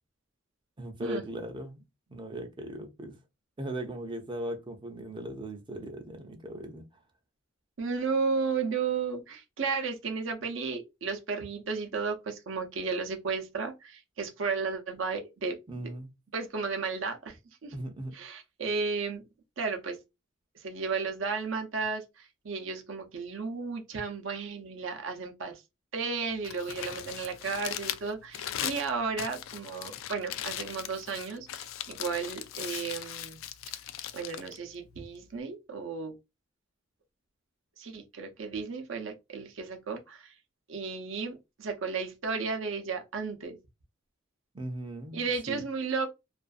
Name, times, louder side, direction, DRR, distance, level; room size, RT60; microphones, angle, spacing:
voice 1, 0.8-3.2 3.6-6.9 15.7-16.1 17.7-18.2 44.5-45.7, right 1 dB, 25° right, 0.5 m, -38 dB
voice 2, 7.8-15.9 16.3-17.4 17.6-17.7 18.1-19.2 19.6-20.0 20.6-22.0 22.4-25.6 25.9-33.4 34.1-36.1 37.8-40.3 40.7-43.6 45.1-46.1, right 4 dB, 70° right, 0.6 m, -33 dB
Crumpling crinkling, 26.3-35.4, left 11 dB, 85° left, 0.3 m, -39 dB
2.5 x 2.3 x 2.4 m
head